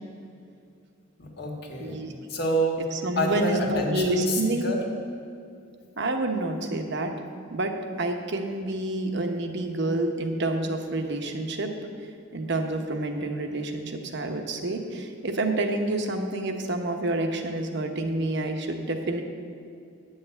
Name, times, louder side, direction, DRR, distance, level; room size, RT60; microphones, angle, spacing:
voice 1, 1.2-2.0 2.3-2.8 3.2-4.8, equal, 50° left, 0 dB, 1.7 m, -27 dB
voice 2, 1.8-2.1 2.9-4.7 6.0-7.1 7.5-11.7 12.3-19.2, right 2 dB, 55° right, 4 dB, 1.0 m, -28 dB
9.9 x 5.6 x 8.1 m, 2.5 s
head